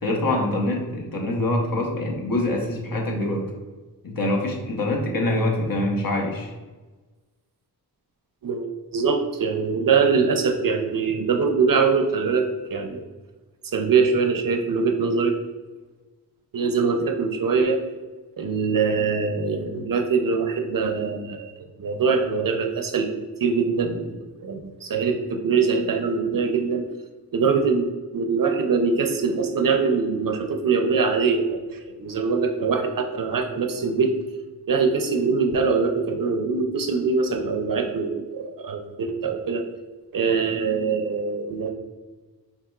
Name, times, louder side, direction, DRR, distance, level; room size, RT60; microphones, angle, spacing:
voice 1, 0.0-3.4 4.0-6.5, left 1 dB, 60° left, 0 dB, 1.0 m, -25 dB
voice 2, 8.4-13.1 13.7-15.3 16.5-17.8 18.4-21.5 21.8-23.1 23.4-26.9 27.3-27.9 28.1-34.1 34.7-39.7 40.1-41.7, right 5 dB, 60° right, 4 dB, 0.5 m, -23 dB
4.7 x 3.4 x 2.3 m, 1.3 s
wide cardioid pair, 60°, 39 cm